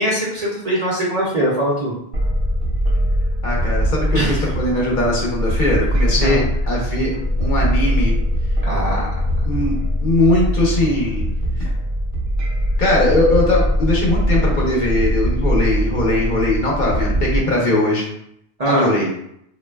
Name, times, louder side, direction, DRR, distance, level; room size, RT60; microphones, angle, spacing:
voice 1, 0.0-1.9 4.1-4.4 6.2-6.4 8.6-9.0 18.6-18.9, right 1 dB, 45° right, -5 dB, 0.6 m, -21 dB
sound 1, 2.1-17.4, equal, 70° right, 0.8 m, -21 dB
voice 2, 3.4-7.1 7.4-8.1 9.4-9.8 10.0-11.3 11.6-11.7 12.8-18.1 18.7-19.1, left 1 dB, 55° left, -3 dB, 0.8 m, -20 dB
3.0 x 2.4 x 2.2 m, 0.74 s
omnidirectional pair, 1.1 m